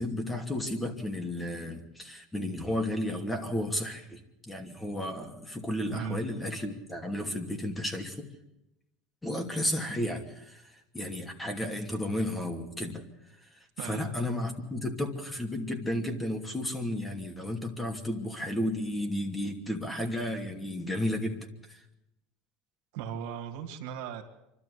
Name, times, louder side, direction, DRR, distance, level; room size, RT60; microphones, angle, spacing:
voice 1, 0.0-8.3 9.2-13.0 13.5-21.8, left 1 dB, 10° left, 4 dB, 2.7 m, -33 dB
voice 2, 13.8-14.1 22.9-24.2, right 8 dB, 70° right, 3 dB, 2.5 m, -37 dB
26.0 x 12.5 x 8.5 m, 0.89 s
supercardioid pair, 105°, 0 cm